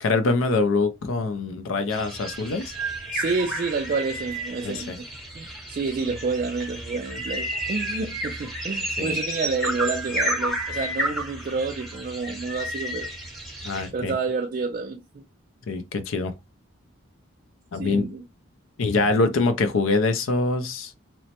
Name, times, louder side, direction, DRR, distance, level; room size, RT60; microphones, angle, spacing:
voice 1, 0.0-2.7 4.6-5.0 9.0-9.2 13.6-14.1 15.7-16.3 17.7-18.1 18.8-20.9, left 3 dB, 70° left, 0.4 m, -24 dB
sound 1, 1.9-13.9, right 1 dB, ahead, 0.7 m, -31 dB
voice 2, 3.1-5.1 5.4-13.1 13.9-15.2 17.8-18.2, right 4 dB, 40° right, 0.3 m, -29 dB
3.0 x 2.0 x 2.8 m
head